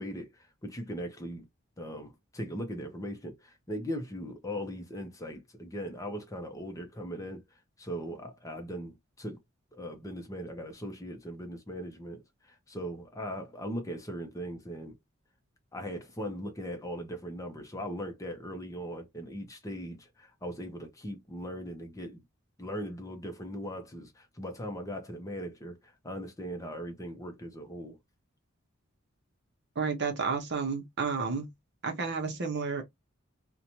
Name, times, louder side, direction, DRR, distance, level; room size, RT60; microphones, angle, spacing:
voice 1, 0.0-1.4 1.8-9.4 9.7-15.0 15.7-22.2 22.6-28.0, equal, 15° left, 0.6 m, -39 dB
voice 2, 29.8-31.5 31.8-32.8, right 5 dB, 55° right, 0.7 m, -31 dB
2.6 x 2.2 x 2.9 m
head